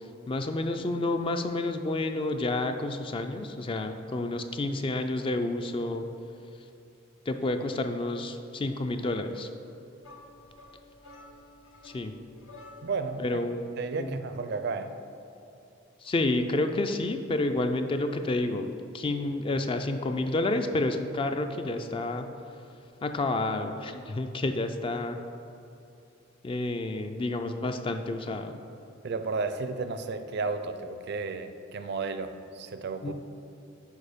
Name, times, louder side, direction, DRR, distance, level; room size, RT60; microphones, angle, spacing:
voice 1, 0.3-6.1 7.3-9.5 11.8-12.1 13.2-13.6 14.0-14.2 16.0-22.3 23.0-25.2 26.4-28.6 33.0-33.1, left 2 dB, 25° left, 7 dB, 0.3 m, -30 dB
sound 1, 10.0-13.2, left 2 dB, 80° left, 0.9 m, -51 dB
voice 2, 12.8-13.4 13.8-14.9 29.0-33.1, right 4 dB, 55° right, 9 dB, 0.4 m, -33 dB
6.4 x 4.9 x 5.1 m, 2.7 s
head